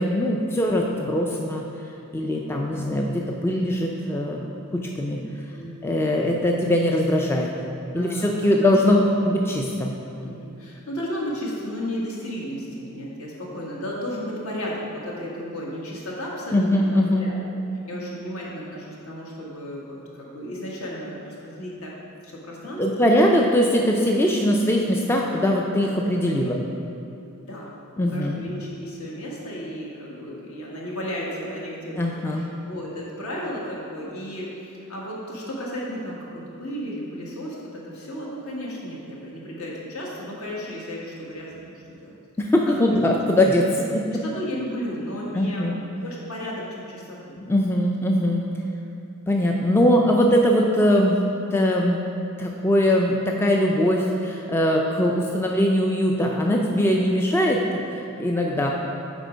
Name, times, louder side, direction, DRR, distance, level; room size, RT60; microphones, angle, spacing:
voice 1, 0.0-1.6 2.1-4.4 4.7-5.2 5.8-7.5 7.9-10.0 16.5-17.3 22.8-26.6 28.0-28.4 32.0-32.4 42.4-44.2 45.3-45.8 47.5-48.4 49.3-51.2 51.5-52.0 52.4-57.6 57.9-58.7, left 1 dB, 10° left, 0 dB, 0.3 m, -21 dB
voice 2, 7.9-9.0 10.2-17.4 17.9-23.1 25.8-25.9 27.5-27.7 28.1-32.0 32.3-42.1 42.7-43.1 44.1-47.3 49.6-49.8, equal, 65° left, -4 dB, 1.5 m, -34 dB
8.1 x 4.2 x 5.0 m, 2.7 s
head